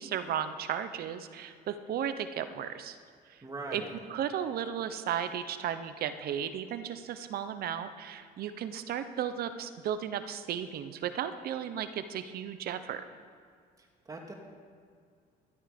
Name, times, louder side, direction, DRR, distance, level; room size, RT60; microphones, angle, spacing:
voice 1, 0.0-3.0 3.3-3.4 3.7-3.8 4.1-13.0, right 9 dB, 65° right, 11 dB, 0.8 m, -35 dB
voice 2, 3.4-3.9 13.8-14.3, right 2 dB, 20° right, 1 dB, 2.2 m, -41 dB
12.5 x 12.0 x 5.2 m, 2.1 s
cardioid pair, 110°, 17 cm